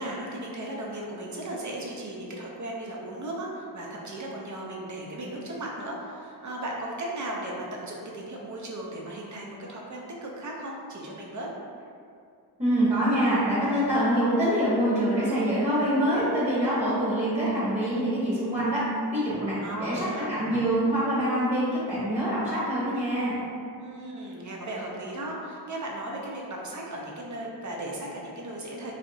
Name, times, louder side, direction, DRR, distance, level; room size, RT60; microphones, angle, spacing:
voice 1, 0.0-11.5 19.6-20.3 23.8-28.9, right 1 dB, 45° right, -2 dB, 0.5 m, -36 dB
voice 2, 12.6-18.8 19.1-23.4, equal, 15° right, -11 dB, 0.8 m, -25 dB
2.7 x 2.1 x 2.6 m, 2.4 s
wide cardioid pair, 60°, 42 cm